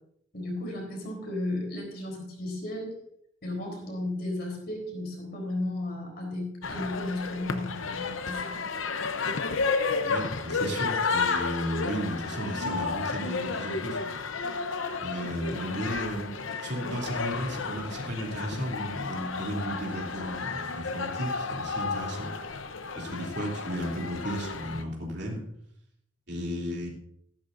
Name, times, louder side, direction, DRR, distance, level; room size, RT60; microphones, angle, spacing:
voice 1, 0.3-2.9 3.4-8.5, left 1 dB, 50° left, 0 dB, 3.9 m, -34 dB
sound 1, 6.6-24.8, left 4 dB, 75° left, 0.9 m, -32 dB
voice 2, 10.1-14.0 15.0-16.3 16.6-22.3 23.0-25.4 26.3-26.9, equal, 55° right, -2 dB, 3.1 m, -34 dB
13.5 x 12.0 x 2.7 m, 0.72 s
head